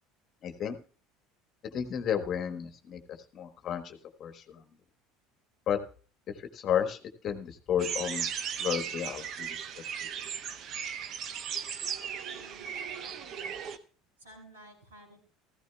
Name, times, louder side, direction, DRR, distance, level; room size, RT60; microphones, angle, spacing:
voice 1, 0.4-0.8 1.7-4.6 5.7-5.8 6.3-7.0 7.2-10.1, left 9 dB, 45° left, 7 dB, 1.3 m, -33 dB
sound 1, 7.8-13.8, right 8 dB, 50° right, 0.9 m, -36 dB
voice 2, 12.2-13.6 14.2-15.2, right 1 dB, 80° right, -1 dB, 6.0 m, -53 dB
16.5 x 14.5 x 2.3 m, 0.41 s
figure-of-eight pair, 65°, 0 cm